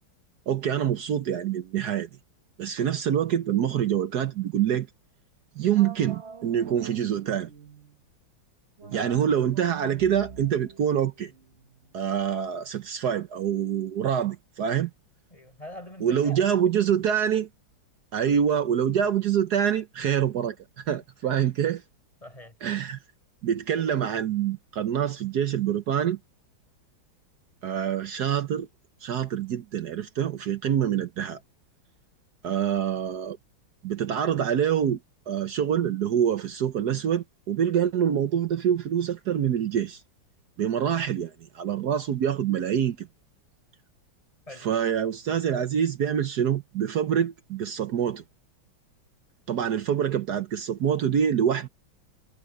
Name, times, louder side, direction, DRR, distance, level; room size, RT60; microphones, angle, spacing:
voice 1, 0.5-2.1 2.6-4.9 5.6-7.5 8.9-11.3 11.9-14.9 16.0-17.5 18.1-21.8 22.6-23.0 23.4-26.2 27.6-28.7 29.0-31.4 32.4-33.4 33.8-35.0 35.3-40.0 40.6-43.1 44.6-48.2 49.5-51.7, right 9 dB, 60° right, 1.3 m, -26 dB
sound 1, 5.7-8.0 8.8-12.1, right 6 dB, 35° right, 1.4 m, -46 dB
voice 2, 8.9-9.2 15.3-16.4 21.4-21.5 22.2-22.6 44.5-44.7, left 1 dB, 15° left, 6.6 m, -43 dB
omnidirectional pair, 2.1 m